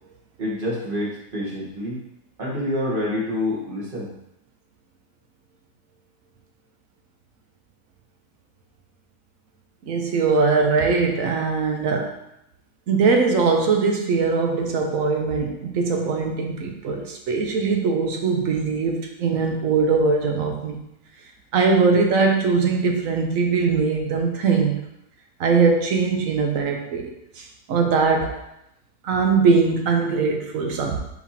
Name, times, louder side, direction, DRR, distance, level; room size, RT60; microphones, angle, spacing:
voice 1, 0.4-2.0 2.4-4.1, left 1 dB, 35° right, -5 dB, 1.1 m, -27 dB
voice 2, 9.8-12.1 12.9-20.8 21.5-24.7 25.4-28.4 29.0-31.0, right 4 dB, 65° right, 2 dB, 1.0 m, -21 dB
4.7 x 3.6 x 2.8 m, 0.82 s
omnidirectional pair, 1.7 m